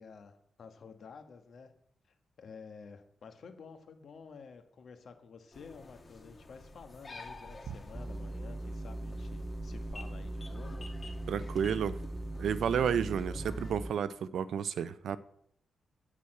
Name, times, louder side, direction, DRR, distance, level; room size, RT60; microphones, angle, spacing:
voice 1, 0.0-1.7 2.1-10.9, left 5 dB, 60° left, 7 dB, 1.4 m, -51 dB
sound 1, 5.5-13.7, left 2 dB, 30° left, 1.6 m, -50 dB
sound 2, 7.9-13.9, right 2 dB, 15° right, 0.4 m, -40 dB
voice 2, 11.3-12.0 12.4-15.2, right 8 dB, 75° right, 15 dB, 0.5 m, -31 dB
8.4 x 6.2 x 7.7 m, 0.73 s
cardioid pair, 115°, 0 cm